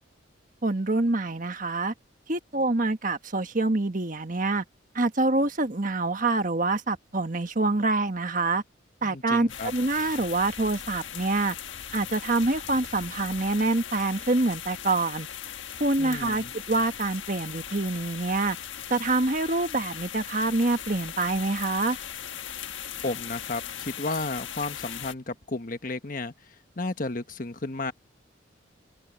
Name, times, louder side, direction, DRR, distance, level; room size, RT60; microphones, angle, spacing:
voice 1, 0.6-1.9 2.3-4.6 4.9-8.6 9.0-11.5 11.9-15.3 15.8-18.6 18.9-22.0, right 2 dB, 45° right, 1.4 m, -26 dB
voice 2, 9.0-9.7 16.0-16.5 23.0-27.9, left 2 dB, 45° left, 1.3 m, -33 dB
sound 1, 9.5-25.1, left 9 dB, 75° left, 1.4 m, -39 dB
head